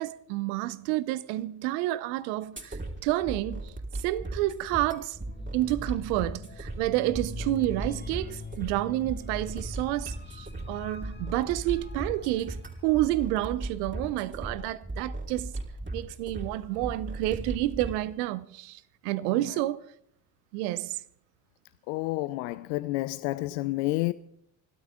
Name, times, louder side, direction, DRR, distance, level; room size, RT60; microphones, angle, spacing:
voice 1, 0.0-3.7 4.0-5.2 5.5-15.5 15.9-19.8 20.5-21.0, right 16 dB, 80° right, 0.9 m, -29 dB
sound 1, 2.6-18.0, right 2 dB, 25° right, 4.1 m, -38 dB
sound 2, 5.2-13.5, left 5 dB, 20° left, 2.0 m, -45 dB
voice 2, 19.2-19.6 21.9-24.1, left 19 dB, 80° left, 0.6 m, -30 dB
29.5 x 12.5 x 3.7 m
hypercardioid pair, 45°, 50 cm